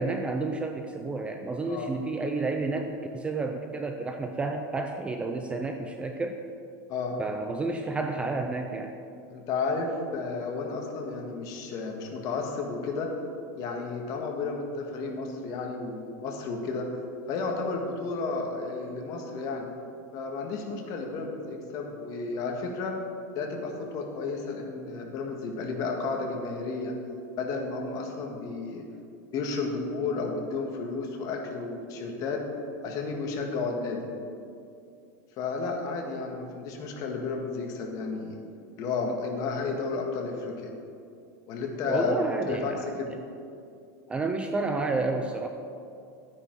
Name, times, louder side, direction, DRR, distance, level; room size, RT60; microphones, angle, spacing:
voice 1, 0.0-6.4 7.2-8.9 41.9-42.9 44.1-45.5, right 3 dB, 10° right, 5 dB, 0.5 m, -30 dB
voice 2, 9.3-13.1 13.6-16.9 17.3-19.7 20.1-23.0 23.3-26.9 27.4-28.8 29.3-32.4 32.8-34.1 35.4-38.4 38.8-40.7 41.5-43.1, left 4 dB, 40° left, 1 dB, 1.7 m, -32 dB
12.0 x 9.6 x 4.7 m, 2.5 s
supercardioid pair, 155°, 10 cm